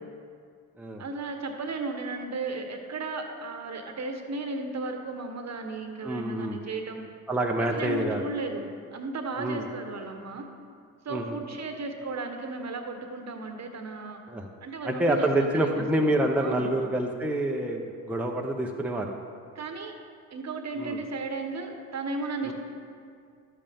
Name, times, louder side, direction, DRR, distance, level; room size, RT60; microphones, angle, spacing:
voice 1, 1.0-7.1 7.6-10.5 11.0-14.2 14.6-16.0 16.4-16.7 19.5-19.9 20.3-22.5, right 3 dB, 40° right, 5 dB, 1.3 m, -35 dB
voice 2, 6.0-6.6 7.3-8.2 9.4-9.7 11.1-11.4 14.3-14.5 14.8-19.2 20.8-21.0 22.4-22.5, right 1 dB, 5° right, 1 dB, 0.9 m, -27 dB
12.5 x 8.4 x 3.6 m, 2.2 s
hypercardioid pair, 55°, 43 cm